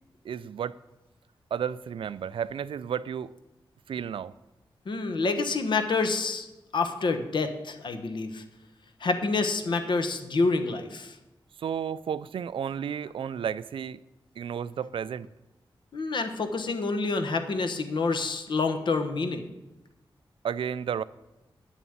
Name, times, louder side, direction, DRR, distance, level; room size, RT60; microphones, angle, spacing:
voice 1, 0.2-0.8 1.5-3.3 3.9-4.3 11.6-14.0 14.4-15.3 20.4-21.0, right 8 dB, 80° right, 0.4 m, -32 dB
voice 2, 4.9-6.5 6.7-8.4 9.0-11.2 15.9-19.5, left 3 dB, 65° left, 1.1 m, -27 dB
9.3 x 7.1 x 8.7 m
wide cardioid pair, 155°, 9 cm